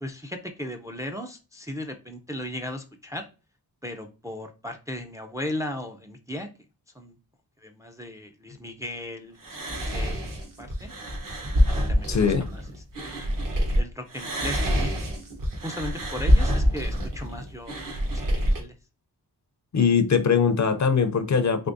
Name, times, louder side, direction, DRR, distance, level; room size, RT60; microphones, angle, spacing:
voice 1, 0.0-3.3 3.8-6.5 6.9-7.1 7.6-10.9 11.7-12.6 12.9-13.1 13.8-15.0 15.6-18.7, left 1 dB, 10° right, 0.4 m, -37 dB
sound 1, 9.4-13.8 14.1-18.6, equal, 55° right, 1.1 m, -25 dB
voice 2, 12.1-12.5 19.7-21.7, left 6 dB, 45° left, 0.5 m, -21 dB
3.5 x 3.2 x 2.5 m
wide cardioid pair, 80°, 39 cm